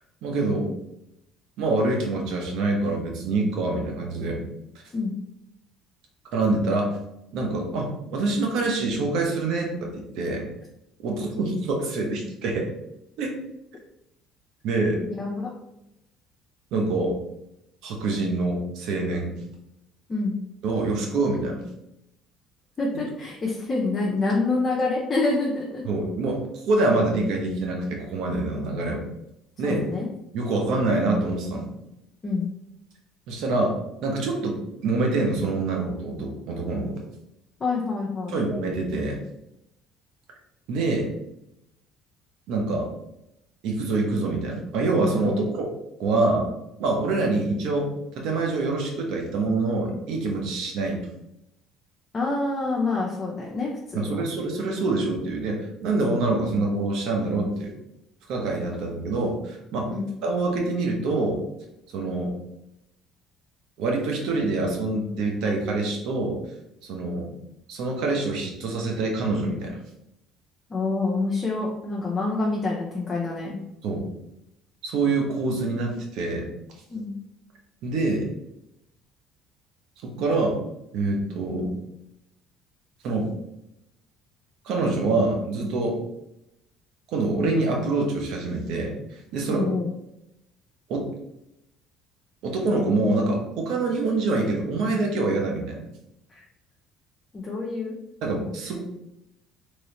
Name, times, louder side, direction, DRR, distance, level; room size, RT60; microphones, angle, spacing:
voice 1, 0.2-0.7 1.6-4.4 6.3-7.0 7.3-10.5 11.0-12.7 13.2-13.3 14.6-15.0 16.7-17.1 17.8-19.4 20.6-21.6 25.9-26.4 26.7-29.0 29.6-29.8 30.3-31.7 33.3-33.7 34.0-36.9 38.3-39.2 40.7-41.1 42.5-42.9 43.6-45.6 46.0-46.4 46.8-51.0 53.9-57.7 58.3-59.9 60.2-61.4 61.9-62.3 63.8-66.4 66.8-67.3 67.7-69.8 73.8-74.0 74.8-76.5 77.8-78.3 80.0-80.6 80.9-81.7 83.0-83.3 84.6-86.0 87.1-89.7 90.9-91.1 92.4-95.8 98.2-98.8, right 2 dB, 70° right, 1 dB, 0.9 m, -25 dB
voice 2, 15.1-15.4 20.1-20.3 22.8-25.8 29.6-30.1 32.2-32.5 37.6-38.4 45.2-45.4 52.1-54.2 59.9-60.1 70.7-73.6 76.9-77.1 89.5-89.9 96.3-96.4 97.3-97.9, left 3 dB, 30° left, -3 dB, 0.6 m, -27 dB
3.1 x 2.7 x 2.9 m, 0.86 s
supercardioid pair, 85°, 0 cm